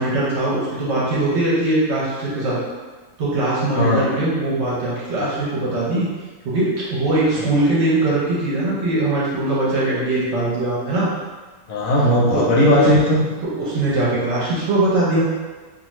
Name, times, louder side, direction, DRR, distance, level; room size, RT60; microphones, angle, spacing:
voice 1, 0.0-2.6 3.2-6.1 6.4-11.1 12.3-12.9 13.6-15.2, right 2 dB, 55° right, -7 dB, 0.8 m, -21 dB
voice 2, 3.7-4.1 7.4-7.5 11.7-13.2, left 1 dB, 70° left, -4 dB, 0.9 m, -17 dB
2.5 x 2.4 x 3.0 m, 1.3 s
omnidirectional pair, 1.6 m